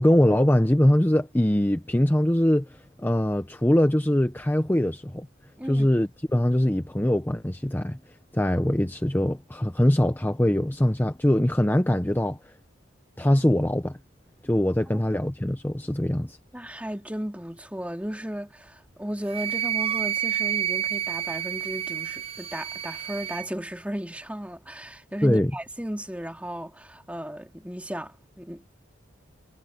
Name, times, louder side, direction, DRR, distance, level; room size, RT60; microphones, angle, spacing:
voice 1, 0.0-5.3 5.7-8.0 8.3-12.4 13.2-14.0 14.4-16.4 25.2-25.5, left 1 dB, 10° left, 0.7 m, -22 dB
voice 2, 16.5-28.7, equal, 5° right, 2.4 m, -35 dB
Wind instrument woodwind instrument, 19.3-23.5, right 11 dB, 30° right, 0.6 m, -29 dB
head